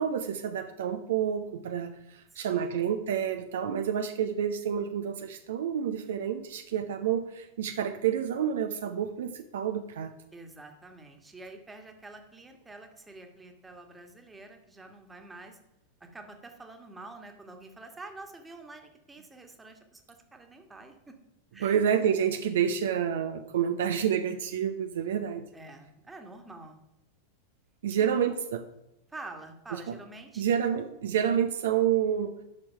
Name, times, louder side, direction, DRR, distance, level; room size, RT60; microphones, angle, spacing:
voice 1, 0.0-10.1 21.6-25.4 27.8-28.6 30.4-32.3, right 8 dB, 60° right, 7 dB, 0.7 m, -29 dB
voice 2, 2.3-2.9 10.3-15.6 16.0-21.2 21.5-21.7 25.5-26.8 28.0-28.1 29.1-30.4, right 2 dB, 10° right, 4 dB, 1.6 m, -47 dB
10.5 x 6.3 x 5.8 m, 0.89 s
figure-of-eight pair, 90°, 0 cm